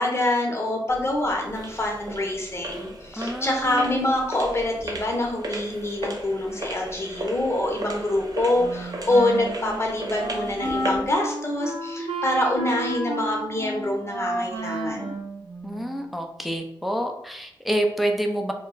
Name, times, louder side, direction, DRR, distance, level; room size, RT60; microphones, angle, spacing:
voice 1, 0.0-15.2, left 1 dB, 30° left, 0 dB, 0.8 m, -25 dB
sound 1, 0.9-11.1, right 1 dB, 45° right, 0.6 m, -36 dB
voice 2, 3.2-4.0 15.6-18.5, right 1 dB, ahead, 3 dB, 0.4 m, -27 dB
Wind instrument woodwind instrument, 8.6-16.1, right 2 dB, 80° right, 0.7 m, -31 dB
2.2 x 2.1 x 3.7 m, 0.75 s
cardioid pair, 55°, 9 cm